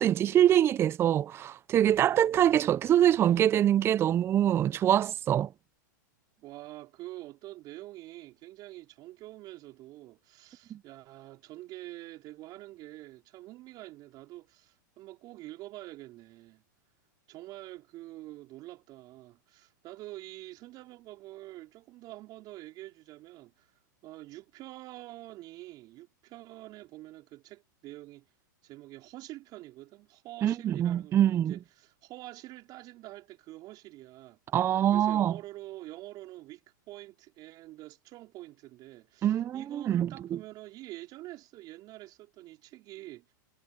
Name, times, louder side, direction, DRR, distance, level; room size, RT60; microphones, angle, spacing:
voice 1, 0.0-5.5 10.7-10.8 30.4-31.5 34.5-35.3 39.2-40.4, right 11 dB, 25° right, 0.5 m, -24 dB
voice 2, 2.2-2.7 6.4-16.6 17.3-23.7 24.0-28.3 28.6-34.4 34.9-43.2, right 17 dB, 40° right, 4.5 m, -46 dB
hypercardioid pair, 120°, 10 cm